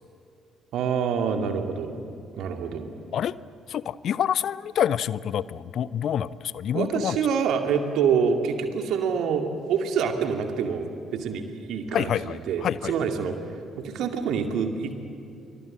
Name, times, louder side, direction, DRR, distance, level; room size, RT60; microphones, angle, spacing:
voice 1, 0.7-2.0 2.4-2.9 6.7-13.3 13.8-15.0, right 6 dB, 60° right, 5 dB, 2.3 m, -26 dB
voice 2, 3.7-7.2 11.9-12.9, left 9 dB, 55° left, 19 dB, 0.5 m, -27 dB
28.0 x 24.5 x 7.6 m, 2.5 s
figure-of-eight pair, 40°, 0 cm